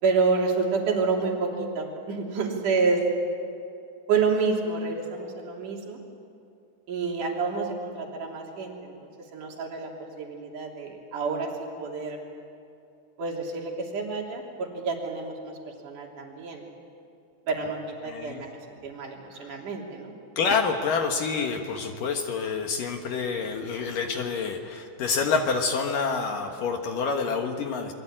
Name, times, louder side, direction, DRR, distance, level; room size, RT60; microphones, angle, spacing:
voice 1, 0.0-3.0 4.1-6.0 6.9-8.9 9.3-9.9 10.2-12.2 13.2-16.6 17.5-20.1, right 4 dB, 50° right, 0 dB, 4.5 m, -28 dB
voice 2, 18.0-18.5 19.4-19.5 20.4-27.9, left 5 dB, 60° left, 4 dB, 2.6 m, -27 dB
28.5 x 22.5 x 8.9 m, 2.6 s
omnidirectional pair, 5.0 m